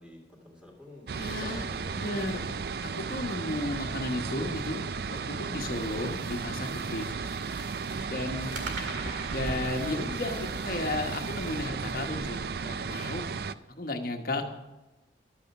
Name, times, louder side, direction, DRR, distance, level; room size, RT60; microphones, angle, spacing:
voice 1, 0.0-2.6, left 2 dB, 5° right, 0 dB, 2.6 m, -50 dB
sound 1, 0.8-2.7 8.5-12.8, right 3 dB, 85° right, 2.1 m, -44 dB
voice 2, 1.1-1.7 1.9-2.4 3.0-7.1 8.1-8.5 9.3-13.2 13.7-14.4, left 2 dB, 50° left, 4 dB, 1.3 m, -34 dB
sound 2, 1.1-13.5, right 5 dB, 55° right, 0.4 m, -34 dB
sound 3, 5.6-13.4, left 2 dB, 25° left, 1.1 m, -48 dB
12.0 x 8.5 x 6.0 m, 1.1 s
head